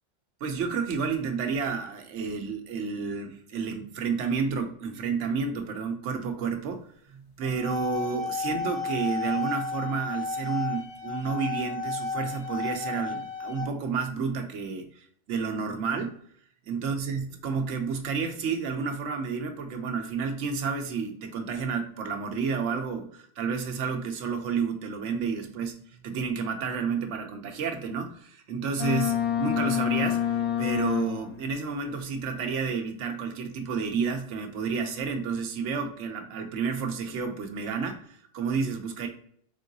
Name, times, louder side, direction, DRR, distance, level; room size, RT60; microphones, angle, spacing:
voice 1, 0.4-16.1 16.7-39.1, right 5 dB, 85° right, 5 dB, 1.0 m, -31 dB
sound 1, 7.4-13.6, left 4 dB, 35° left, 0.9 m, -33 dB
Boat Water vehicle, 28.8-31.5, left 10 dB, 70° left, 0.9 m, -27 dB
3.7 x 3.7 x 2.6 m, 0.63 s
omnidirectional pair, 1.2 m